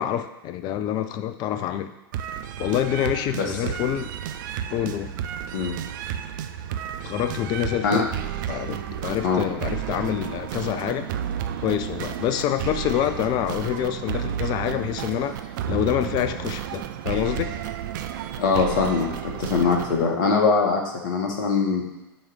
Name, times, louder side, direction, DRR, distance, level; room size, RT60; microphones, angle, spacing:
voice 1, 0.0-1.9 2.6-4.1 4.7-5.1 7.0-8.1 8.5-11.1 11.6-17.6, left 11 dB, 35° left, 10 dB, 0.5 m, -26 dB
sound 1, 2.1-20.1, right 10 dB, 50° right, 0.5 m, -32 dB
voice 2, 18.4-21.8, left 5 dB, 55° left, 1 dB, 1.4 m, -22 dB
7.1 x 3.2 x 6.1 m, 0.98 s
figure-of-eight pair, 90°, 13 cm